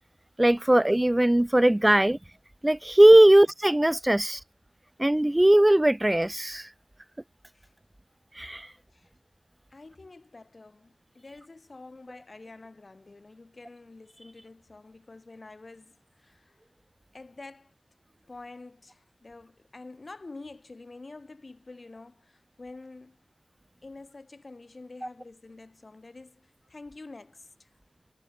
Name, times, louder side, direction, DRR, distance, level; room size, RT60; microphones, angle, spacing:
voice 1, 0.4-2.2 2.6-4.4 5.0-6.7 8.4-8.7, right 1 dB, 15° right, 0.5 m, -19 dB
voice 2, 9.7-16.6 17.1-17.7 18.3-23.2 23.8-27.7, left 3 dB, 45° left, 5.4 m, -47 dB
wide cardioid pair, 65°, 0 cm